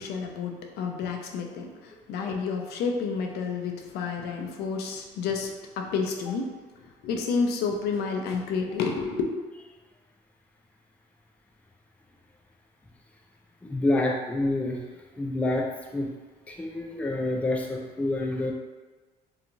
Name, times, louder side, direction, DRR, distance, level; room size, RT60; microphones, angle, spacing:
voice 1, 0.0-5.5 5.8-6.5 7.0-9.2, left 5 dB, 75° left, 3 dB, 0.4 m, -30 dB
voice 2, 13.6-14.8 15.2-16.1 16.5-18.5, left 2 dB, 10° left, 0 dB, 0.3 m, -27 dB
2.9 x 2.3 x 2.5 m, 1.3 s
cardioid pair, 110°, 17 cm